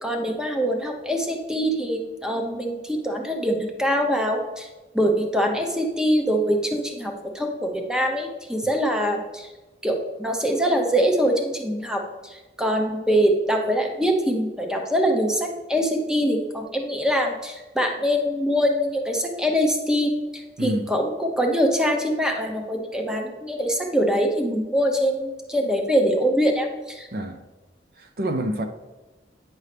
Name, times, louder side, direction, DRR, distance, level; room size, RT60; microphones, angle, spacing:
voice 1, 0.0-4.7 4.9-9.5 9.8-20.1 20.6-27.1, equal, 5° right, 0.7 m, -23 dB
voice 2, 20.6-20.9 27.1-27.4 28.0-28.6, right 1 dB, 55° right, 0.5 m, -27 dB
9.3 x 5.4 x 3.3 m
head